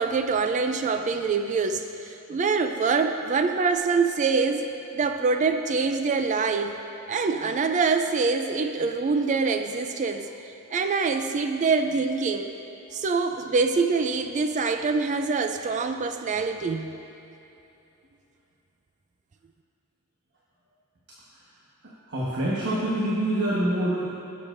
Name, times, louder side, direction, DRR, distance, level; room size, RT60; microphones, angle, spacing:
voice 1, 0.0-4.7 4.9-6.8 7.1-12.5 12.9-17.0, right 4 dB, 35° right, 7 dB, 0.3 m, -25 dB
voice 2, 22.1-24.2, right 1 dB, 55° right, -6 dB, 1.3 m, -25 dB
17.0 x 7.2 x 2.6 m, 2.8 s
head